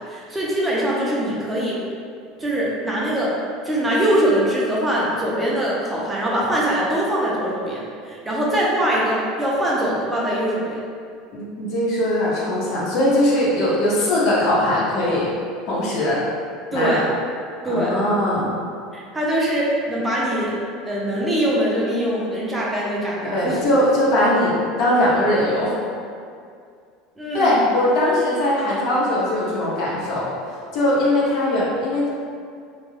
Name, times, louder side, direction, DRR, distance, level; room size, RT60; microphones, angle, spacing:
voice 1, 0.0-1.8 2.4-3.3 3.6-10.8 16.7-17.0 17.6-18.0 18.9-20.6 20.8-23.6 27.2-27.7, right 1 dB, 15° right, -6 dB, 0.5 m, -22 dB
voice 2, 11.3-15.3 15.7-16.2 16.7-17.0 17.6-18.5 23.2-24.5 24.8-25.7 27.3-30.3 30.7-32.1, left 1 dB, 60° left, -6 dB, 0.8 m, -20 dB
2.2 x 2.2 x 3.2 m, 2.3 s
supercardioid pair, 115°, 0 cm